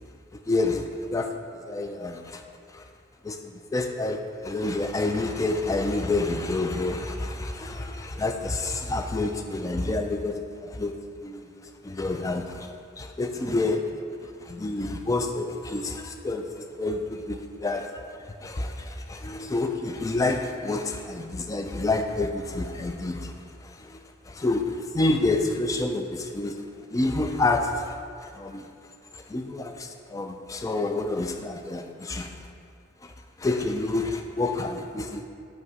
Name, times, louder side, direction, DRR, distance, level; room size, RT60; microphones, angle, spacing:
voice 1, 0.5-1.3 1.7-2.4 2.7-2.8 3.2-10.9 11.2-11.4 11.8-13.8 14.2-18.0 18.4-23.3 23.6-24.0 24.3-26.6 26.9-28.7 29.1-32.3 33.0-33.1 33.4-35.3, left 2 dB, 15° left, 5 dB, 0.3 m, -28 dB
7.9 x 2.8 x 4.7 m, 2.3 s
head